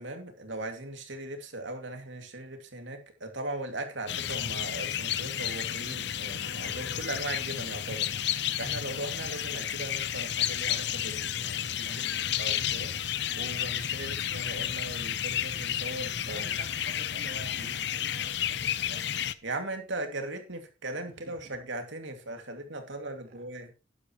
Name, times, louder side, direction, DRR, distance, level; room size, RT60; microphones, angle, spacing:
voice 1, 0.0-12.0 12.4-12.9 13.3-16.4 17.6-17.7 19.4-23.7, right 2 dB, 70° right, 2.4 m, -39 dB
sound 1, 4.1-19.3, left 10 dB, 60° left, 0.7 m, -32 dB
voice 2, 11.8-12.4 16.2-19.1 21.0-21.6 22.3-22.9 23.3-23.4, right 2 dB, 50° right, 2.8 m, -49 dB
12.0 x 11.0 x 3.1 m
head